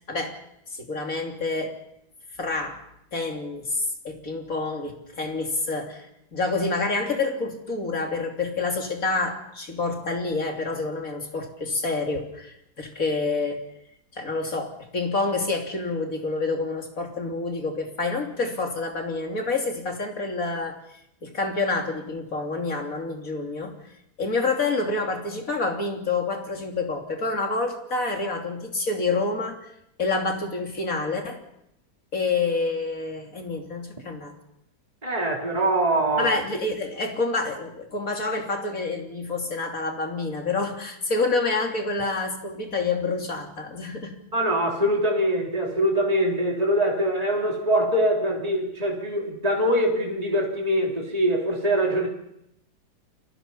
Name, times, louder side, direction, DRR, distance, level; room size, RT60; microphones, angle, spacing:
voice 1, 0.7-1.8 2.4-2.8 3.1-13.6 14.1-20.8 21.2-23.7 24.2-29.6 30.0-31.4 32.1-34.3 36.2-44.2, left 3 dB, 55° left, 3 dB, 3.5 m, -28 dB
voice 2, 35.0-36.3 44.3-52.1, right 1 dB, 20° right, 0 dB, 3.4 m, -23 dB
29.5 x 22.5 x 5.6 m, 0.80 s
omnidirectional pair, 1.7 m